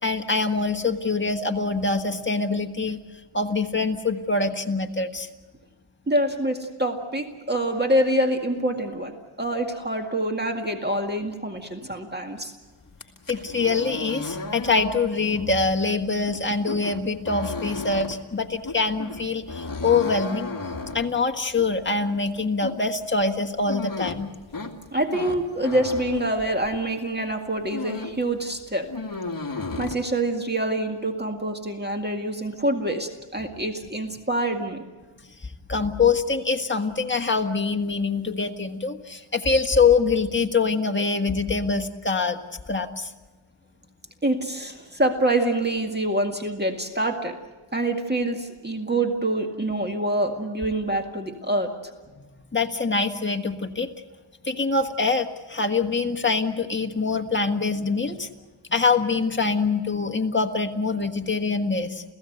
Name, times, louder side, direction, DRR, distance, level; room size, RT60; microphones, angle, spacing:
voice 1, 0.0-3.0 3.3-5.3 13.3-20.5 20.9-24.3 35.2-42.4 42.7-43.1 52.5-53.9 54.4-58.3 58.7-62.0, left 4 dB, 25° left, 5 dB, 1.6 m, -24 dB
voice 2, 6.1-12.5 24.9-28.9 29.8-34.9 44.2-47.4 47.7-51.9, right 1 dB, 20° right, 4 dB, 2.0 m, -26 dB
sound 1, 12.9-26.9 27.3-28.3 28.5-29.9, left 3 dB, 40° left, 2.4 m, -35 dB
30.0 x 16.0 x 8.0 m, 1.2 s
wide cardioid pair, 105°, 49 cm